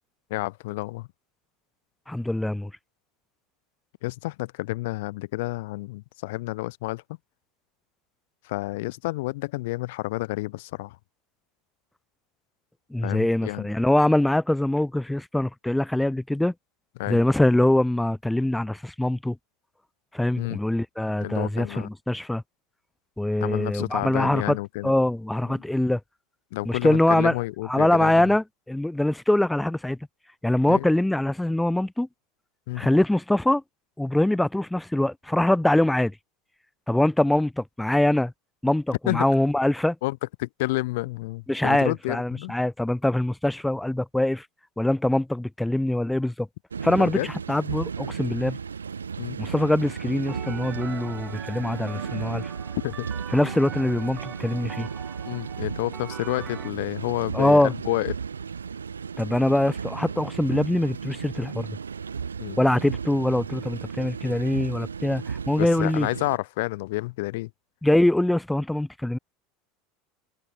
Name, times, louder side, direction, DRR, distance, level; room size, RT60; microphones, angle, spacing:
voice 1, 0.3-1.1 4.0-7.0 8.5-11.0 13.0-13.7 17.0-17.2 20.4-20.6 21.2-21.9 23.4-24.9 25.5-25.6 26.5-28.2 30.7-30.9 32.7-32.9 39.1-39.2 40.0-42.5 46.9-47.3 49.2-49.4 52.8-53.1 55.3-58.1 62.4-62.6 65.6-67.5, left 21 dB, 65° left, 0.5 m, -30 dB
voice 2, 2.1-2.7 12.9-16.5 17.1-19.4 20.1-22.4 23.2-24.6 24.8-26.0 26.6-27.4 27.6-30.0 30.4-32.1 32.8-33.6 34.0-36.1 36.9-38.3 38.6-40.0 41.5-44.5 44.8-46.5 46.8-48.6 49.4-52.5 53.3-54.9 57.3-57.7 59.2-61.7 62.6-66.1 67.8-69.2, left 1 dB, 5° left, 0.6 m, -23 dB
sound 1, 46.7-66.4, right 6 dB, 85° right, 0.4 m, -35 dB
sound 2, 49.7-56.7, right 9 dB, 40° right, 4.7 m, -42 dB
hypercardioid pair, 80°, 0 cm